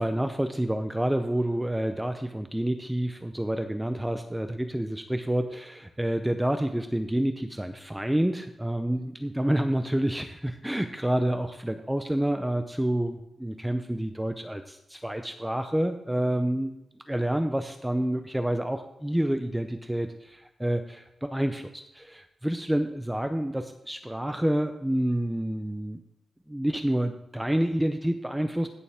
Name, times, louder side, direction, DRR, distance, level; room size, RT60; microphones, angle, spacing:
voice 1, 0.0-16.7 17.1-26.0 26.5-28.7, right 1 dB, 5° right, 7 dB, 0.6 m, -28 dB
16.0 x 6.8 x 3.5 m, 0.89 s
wide cardioid pair, 115°, 0 cm